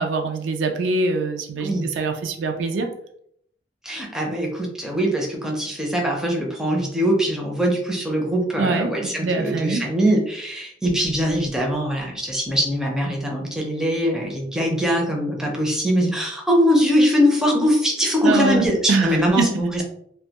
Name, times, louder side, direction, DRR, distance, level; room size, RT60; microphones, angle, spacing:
voice 1, 0.0-2.9 8.6-9.9 18.2-19.5, right 3 dB, 75° right, 5 dB, 0.4 m, -23 dB
voice 2, 3.8-19.8, equal, 5° right, -1 dB, 0.4 m, -22 dB
2.1 x 2.1 x 2.8 m, 0.68 s
head